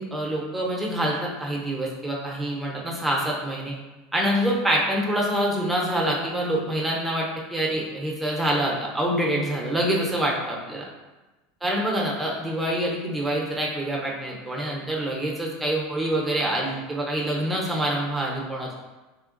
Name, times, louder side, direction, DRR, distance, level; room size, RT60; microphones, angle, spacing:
voice 1, 0.0-3.7 4.1-10.8 11.6-18.7, right 1 dB, 5° right, -3 dB, 0.7 m, -26 dB
3.6 x 2.3 x 2.5 m, 1.1 s
supercardioid pair, 110°, 0 cm